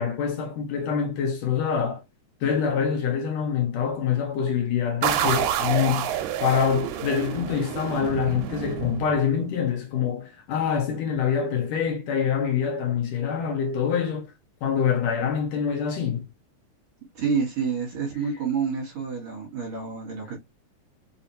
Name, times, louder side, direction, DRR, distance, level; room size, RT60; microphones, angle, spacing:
voice 1, 0.0-2.0 2.4-6.1 6.4-14.3 14.6-16.3, left 7 dB, 75° left, 1.8 m, -25 dB
sound 1, 5.0-9.5, right 9 dB, 85° right, 2.0 m, -28 dB
voice 2, 17.1-20.4, right 5 dB, 55° right, 2.1 m, -28 dB
5.3 x 2.5 x 2.6 m
omnidirectional pair, 3.4 m